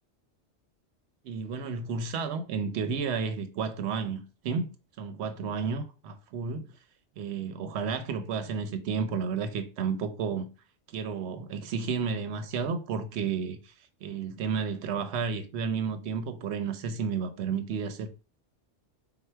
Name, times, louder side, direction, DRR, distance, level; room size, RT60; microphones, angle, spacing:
voice 1, 1.2-6.7 7.2-10.5 10.9-13.7 14.0-18.1, right 5 dB, 70° right, 0.8 m, -32 dB
4.4 x 2.1 x 4.4 m
omnidirectional pair, 1.2 m